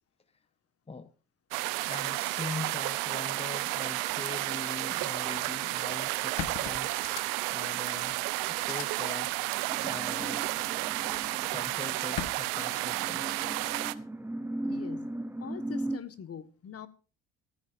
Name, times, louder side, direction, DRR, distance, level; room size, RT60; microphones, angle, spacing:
sound 1, 1.5-13.9, right 21 dB, 85° right, 0.7 m, -32 dB
voice 1, 1.9-9.3 9.8-10.5 11.5-13.4, left 4 dB, 15° left, 1.0 m, -42 dB
sound 2, 5.8-5.9 6.4-7.6 8.0-8.1 8.6-8.8 10.2-10.6 12.2-12.3, left 12 dB, 65° left, 1.2 m, -38 dB
sound 3, 9.7-16.0, right 1 dB, 5° right, 0.7 m, -38 dB
voice 2, 14.7-15.1 15.4-16.9, left 8 dB, 45° left, 1.5 m, -43 dB
15.0 x 14.5 x 2.6 m
supercardioid pair, 70°, 34 cm